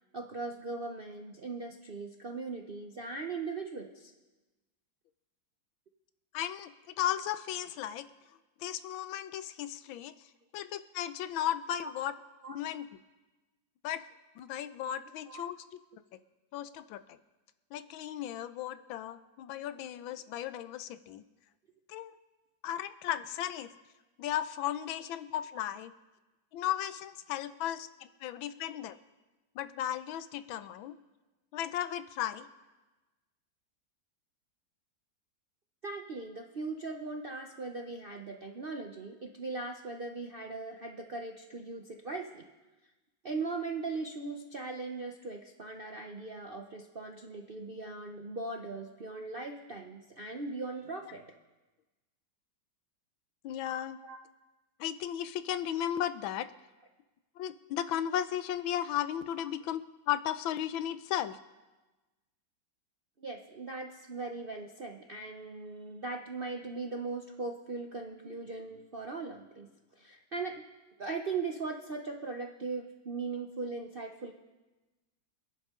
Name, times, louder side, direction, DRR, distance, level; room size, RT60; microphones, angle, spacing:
voice 1, 0.1-4.1 11.8-11.9 12.4-12.6 15.3-15.4 35.8-42.4 43.2-51.2 54.0-54.2 63.2-69.7 69.9-70.6 71.0-74.3, right 3 dB, 55° right, 3 dB, 0.6 m, -39 dB
voice 2, 6.3-8.0 8.6-10.1 10.5-12.1 12.5-12.9 13.8-14.0 14.4-15.6 16.1-16.2 16.5-17.2 17.7-21.2 21.9-22.1 22.6-23.7 24.2-25.9 26.5-29.0 29.5-31.0 31.5-32.5 53.4-54.0 54.8-56.5 57.4-61.4, left 11 dB, 85° left, 12 dB, 1.4 m, -35 dB
26.5 x 10.5 x 3.7 m, 1.2 s
omnidirectional pair, 2.1 m